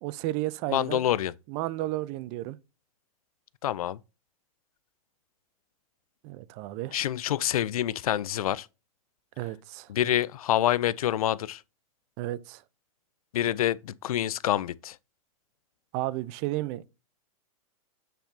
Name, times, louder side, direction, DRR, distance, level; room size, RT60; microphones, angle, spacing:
voice 1, 0.0-1.0 1.5-2.6 6.2-7.0 9.4-9.9 12.2-12.6 15.9-16.9, right 16 dB, 35° right, 0.5 m, -32 dB
voice 2, 0.7-1.3 3.6-4.0 6.9-8.7 9.9-11.6 13.3-15.0, left 12 dB, 85° left, 0.4 m, -27 dB
7.9 x 4.4 x 2.7 m
hypercardioid pair, 135°, 18 cm